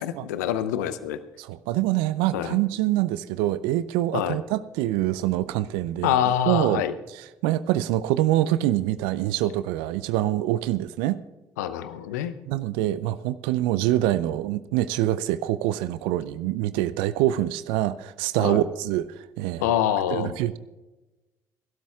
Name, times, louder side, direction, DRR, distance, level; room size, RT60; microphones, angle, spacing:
voice 1, 0.0-1.2 2.3-2.6 4.1-4.4 6.0-6.9 11.6-12.3 18.4-18.6 19.6-20.3, left 10 dB, 80° left, 13 dB, 0.7 m, -25 dB
voice 2, 1.4-6.8 7.1-11.2 12.5-19.7 20.1-20.6, right 14 dB, 70° right, 15 dB, 0.5 m, -25 dB
25.5 x 12.5 x 2.4 m, 1.1 s
hypercardioid pair, 50°, 9 cm